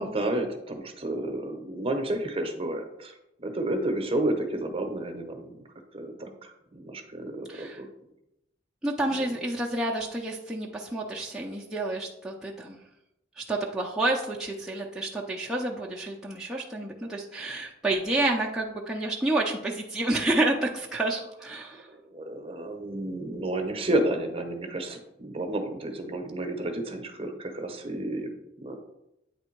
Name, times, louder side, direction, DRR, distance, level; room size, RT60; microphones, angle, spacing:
voice 1, 0.0-3.1 3.4-5.6 5.9-7.9 9.1-9.3 21.9-28.3 28.6-28.8, right 1 dB, 30° right, 5 dB, 0.8 m, -31 dB
voice 2, 7.5-7.8 8.8-12.8 13.4-21.9, right 2 dB, 5° right, -4 dB, 0.5 m, -29 dB
8.6 x 3.3 x 4.5 m, 0.88 s
head